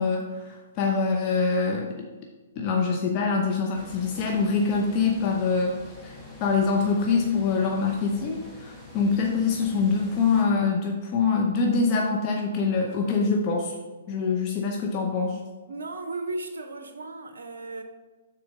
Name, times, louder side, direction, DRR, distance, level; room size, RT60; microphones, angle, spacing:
voice 1, 0.0-2.0 2.6-5.8 6.0-13.8 14.1-15.4, left 4 dB, 35° left, 0.8 m, -24 dB
sound 1, 3.7-10.4, left 2 dB, 5° left, 1.4 m, -45 dB
voice 2, 15.7-17.8, right 2 dB, 75° right, 0.6 m, -35 dB
6.4 x 4.3 x 5.0 m
figure-of-eight pair, 125°, 0 cm